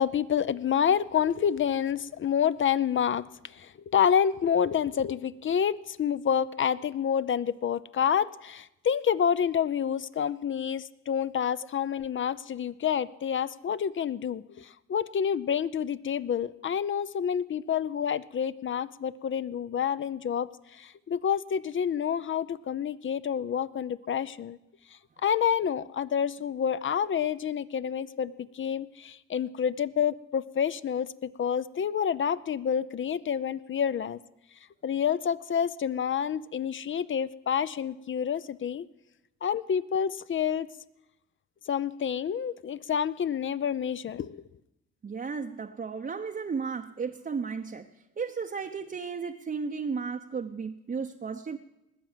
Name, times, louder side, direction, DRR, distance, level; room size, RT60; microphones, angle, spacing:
voice 1, 0.0-24.6 25.2-34.2 34.8-38.9 39.4-40.7 41.7-44.4, left 8 dB, 40° left, 16 dB, 0.6 m, -28 dB
voice 2, 45.0-47.8 48.2-51.6, right 5 dB, 30° right, 3 dB, 0.8 m, -34 dB
20.0 x 7.8 x 7.4 m, 0.90 s
cardioid pair, 90°, 30 cm